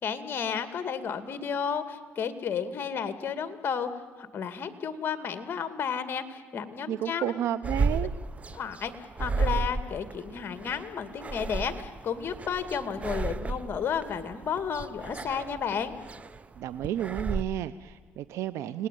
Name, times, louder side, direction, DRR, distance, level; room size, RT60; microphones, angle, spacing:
voice 1, 0.0-3.9 4.2-7.3 8.5-8.9 9.2-15.9, left 7 dB, 45° left, 11 dB, 2.3 m, -32 dB
voice 2, 6.9-8.1 16.6-18.9, right 12 dB, 80° right, 15 dB, 0.7 m, -31 dB
sound 1, 7.6-17.4, right 4 dB, 30° right, 0.9 m, -33 dB
29.5 x 19.5 x 9.3 m, 1.5 s
cardioid pair, 95°, 5 cm